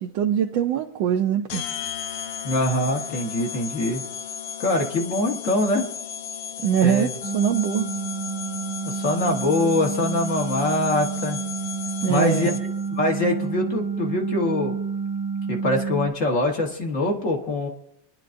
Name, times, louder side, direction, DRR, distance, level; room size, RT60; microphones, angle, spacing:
voice 1, 0.0-1.6 6.6-7.9 12.0-12.6, right 9 dB, 75° right, 1.3 m, -23 dB
sound 1, 1.5-12.9, left 7 dB, 65° left, 1.1 m, -35 dB
voice 2, 2.4-4.0 4.6-5.9 6.8-7.1 8.8-11.4 12.1-12.5 12.9-14.8 15.5-17.7, left 2 dB, 45° left, 1.5 m, -23 dB
sound 2, 7.2-16.1, right 5 dB, 20° right, 1.0 m, -29 dB
26.0 x 10.5 x 2.6 m
omnidirectional pair, 2.1 m